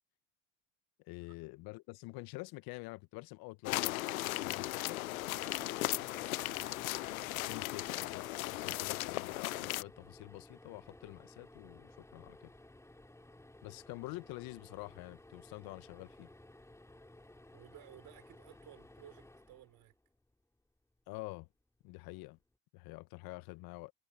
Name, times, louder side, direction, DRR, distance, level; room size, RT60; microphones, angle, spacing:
voice 1, 1.0-4.1 4.4-5.0 7.4-12.5 13.6-16.3 21.1-21.5 21.8-22.4 22.7-23.9, left 23 dB, 60° left, 1.6 m, -47 dB
sound 1, 3.6-9.8, left 17 dB, 85° left, 0.6 m, -37 dB
sound 2, 5.1-20.4 22.1-22.3 22.5-22.6, left 1 dB, 5° left, 3.0 m, -57 dB
voice 2, 5.4-6.8 17.5-19.9, right 15 dB, 55° right, 5.8 m, -57 dB
hypercardioid pair, 70°, 41 cm